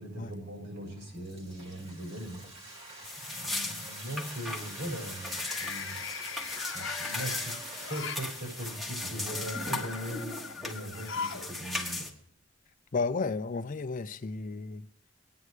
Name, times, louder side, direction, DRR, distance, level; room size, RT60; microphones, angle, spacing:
voice 1, 0.0-2.4 3.2-6.0 6.7-12.1, right 1 dB, 75° right, 5.9 m, -40 dB
Frying (food), 0.9-8.8, right 2 dB, 35° right, 1.9 m, -47 dB
sound 1, 1.7-2.3 2.7-3.1 5.2-8.3 9.1-11.5 11.8-11.9 13.0-13.1, left 6 dB, 75° left, 0.8 m, -40 dB
sound 2, 3.0-12.1, left 2 dB, ahead, 1.4 m, -38 dB
voice 2, 12.9-14.9, left 4 dB, 45° left, 0.5 m, -32 dB
21.0 x 9.4 x 3.2 m
head